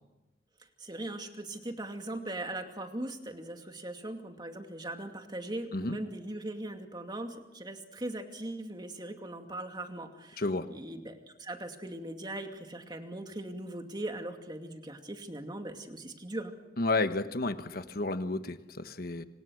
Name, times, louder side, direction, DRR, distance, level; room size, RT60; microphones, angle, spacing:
voice 1, 0.8-16.5, right 1 dB, 25° right, 5 dB, 2.4 m, -40 dB
voice 2, 10.4-10.7 16.8-19.2, left 2 dB, 60° left, 10 dB, 1.3 m, -31 dB
27.5 x 26.5 x 6.5 m, 1.0 s
head